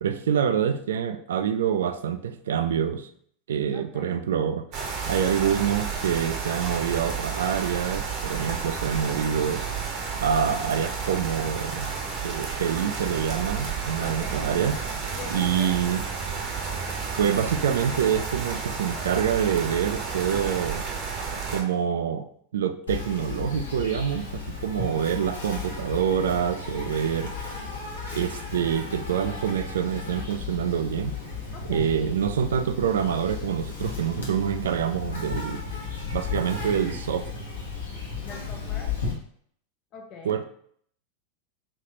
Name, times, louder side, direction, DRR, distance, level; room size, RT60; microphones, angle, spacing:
voice 1, 0.0-3.1 3.5-4.7 5.1-9.6 10.2-11.9 12.2-14.8 15.3-16.0 17.2-20.8 21.5-22.3 22.5-27.3 28.1-31.2 31.7-35.6 36.1-37.3 40.2-40.5, right 8 dB, 65° right, 10 dB, 0.3 m, -26 dB
voice 2, 3.7-4.2 14.0-14.5 15.1-15.8 31.5-31.9 38.2-38.9 39.9-40.4, left 3 dB, 35° left, 2 dB, 0.6 m, -42 dB
sound 1, 4.7-21.6, right 5 dB, 40° right, 0.8 m, -31 dB
Insect, 22.9-39.1, left 5 dB, 70° left, 1.0 m, -34 dB
3.2 x 3.2 x 2.8 m, 0.62 s
figure-of-eight pair, 85°, 0 cm